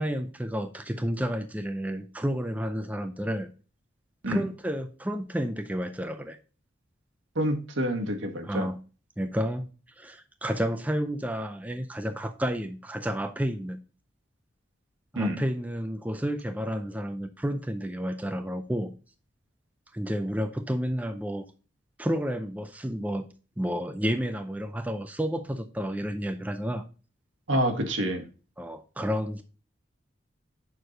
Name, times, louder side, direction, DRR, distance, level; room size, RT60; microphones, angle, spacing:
voice 1, 0.0-3.5 4.3-6.4 8.4-8.8 9.2-9.7 10.0-13.8 15.1-18.9 19.9-21.5 22.0-23.2 23.6-26.8 28.6-29.4, equal, 10° right, 8 dB, 0.4 m, -31 dB
voice 2, 7.3-8.7 15.1-15.4 27.5-28.2, equal, 85° right, 3 dB, 1.6 m, -27 dB
6.4 x 4.7 x 5.1 m, 0.35 s
head